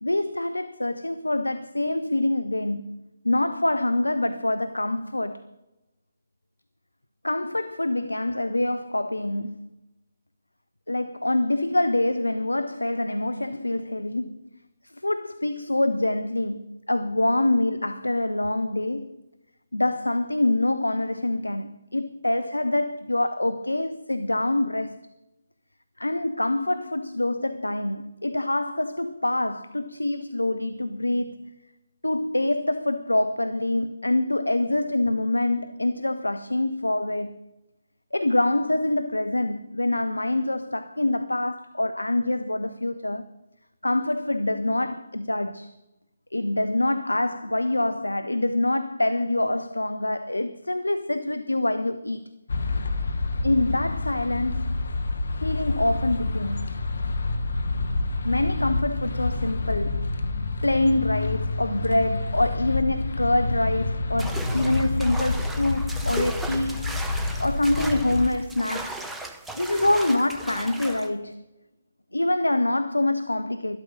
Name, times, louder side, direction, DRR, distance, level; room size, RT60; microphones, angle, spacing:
voice 1, 0.0-5.4 7.2-9.7 10.9-14.4 14.8-19.2 19.7-25.0 26.0-31.5 32.0-37.4 38.1-43.2 43.8-45.7 46.3-52.3 53.4-54.8 55.3-56.7 58.2-60.2 60.6-67.0 67.4-69.1 69.5-71.4 72.1-73.8, left 1 dB, 85° left, 0.7 m, -25 dB
sound 1, 52.5-68.3, left 3 dB, 65° left, 1.3 m, -28 dB
sound 2, 64.2-71.1, right 2 dB, 5° right, 1.0 m, -37 dB
12.5 x 12.5 x 5.5 m
figure-of-eight pair, 140°, 0 cm